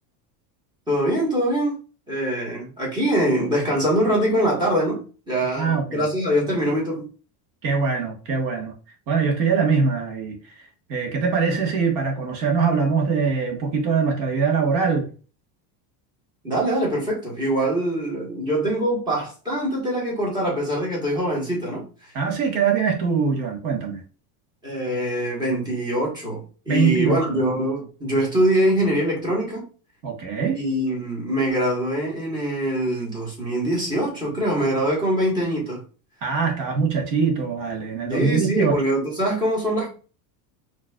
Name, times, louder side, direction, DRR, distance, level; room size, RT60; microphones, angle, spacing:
voice 1, 0.9-1.7 2.1-7.0 16.4-21.8 24.6-29.7 30.5-35.8 38.1-39.9, right 1 dB, 10° right, 1.4 m, -23 dB
voice 2, 5.6-6.1 7.6-8.7 9.1-15.1 22.1-24.0 26.7-27.4 30.0-30.6 36.2-38.8, right 5 dB, 80° right, 1.6 m, -23 dB
5.0 x 3.1 x 2.3 m
cardioid pair, 175°, 49 cm